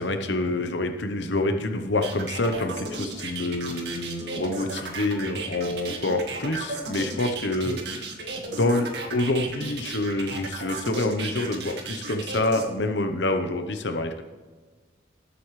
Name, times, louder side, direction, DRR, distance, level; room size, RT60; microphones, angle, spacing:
voice 1, 0.0-8.2 8.5-14.2, left 2 dB, 80° left, 6 dB, 0.9 m, -27 dB
sound 1, 2.0-12.6, right 3 dB, 70° right, 1.9 m, -34 dB
20.0 x 8.2 x 3.2 m, 1.4 s
head